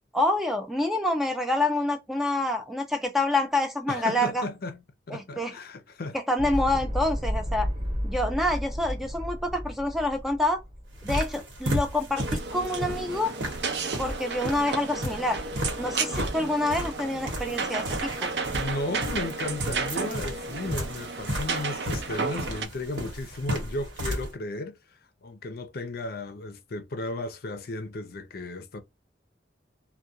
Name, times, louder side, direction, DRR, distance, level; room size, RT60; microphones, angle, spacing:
voice 1, 0.1-4.4 5.1-5.6 6.1-7.7 8.0-10.6 11.0-13.3 14.0-15.4 15.8-18.3, left 1 dB, ahead, 0.3 m, -27 dB
voice 2, 3.9-4.8 5.1-6.2 18.6-24.7 25.2-28.8, left 2 dB, 55° left, 0.5 m, -34 dB
sound 1, 6.4-11.6, equal, 30° right, 0.7 m, -32 dB
sound 2, 10.9-24.3, equal, 85° right, 1.1 m, -34 dB
sound 3, 12.2-22.7, right 4 dB, 65° right, 0.5 m, -33 dB
2.3 x 2.2 x 2.7 m
head